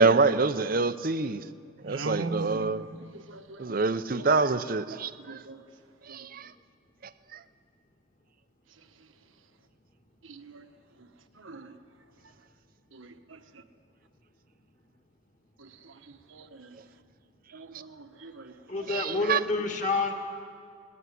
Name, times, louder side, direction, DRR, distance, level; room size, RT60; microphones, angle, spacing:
voice 1, 0.0-1.4 1.8-2.8 3.6-5.4 6.1-6.5 7.3-7.4 18.9-19.4, right 4 dB, 45° right, 13 dB, 0.6 m, -26 dB
voice 2, 1.8-3.8 4.2-4.4 4.9-5.6 6.1-6.5 10.2-10.7 11.0-11.1 11.3-11.7 12.9-13.6 15.6-16.8 17.5-18.5, right 3 dB, 75° right, 8 dB, 1.3 m, -41 dB
voice 3, 18.7-20.1, left 3 dB, 35° left, 2 dB, 2.2 m, -28 dB
19.5 x 18.5 x 9.8 m, 2.3 s
head